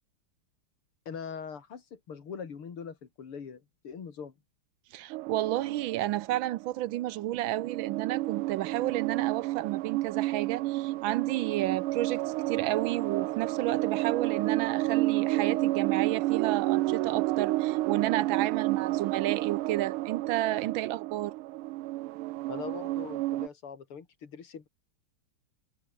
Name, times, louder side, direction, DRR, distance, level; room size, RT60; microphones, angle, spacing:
voice 1, 1.1-4.3 22.5-24.7, left 6 dB, 85° left, 3.4 m, -42 dB
voice 2, 4.9-21.3, right 15 dB, 75° right, 1.3 m, -31 dB
sound 1, 5.1-7.0 7.4-23.5, right 18 dB, 90° right, 1.5 m, -30 dB
omnidirectional pair, 2.3 m